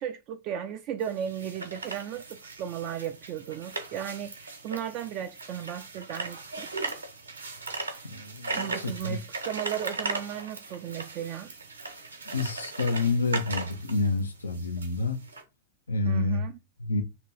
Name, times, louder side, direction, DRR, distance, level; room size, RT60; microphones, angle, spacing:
voice 1, 0.0-6.7 8.5-11.5 16.0-16.5, right 10 dB, 40° right, 0.4 m, -35 dB
sound 1, 1.0-15.4, right 3 dB, 75° right, 0.8 m, -38 dB
voice 2, 8.1-9.2 12.3-15.2 15.9-16.5 16.8-17.0, left 3 dB, 75° left, 0.6 m, -28 dB
3.0 x 2.7 x 3.8 m
figure-of-eight pair, 90°, 0 cm